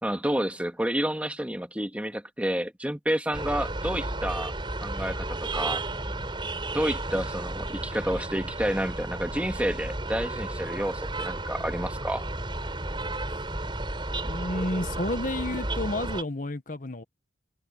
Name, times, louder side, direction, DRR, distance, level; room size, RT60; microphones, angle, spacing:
voice 1, 0.0-4.5 4.8-5.8 6.7-12.2, right 1 dB, 10° right, 2.0 m, -29 dB
sound 1, 3.3-16.2, right 2 dB, 30° right, 5.5 m, -33 dB
voice 2, 14.2-17.0, left 1 dB, 50° left, 1.4 m, -31 dB
head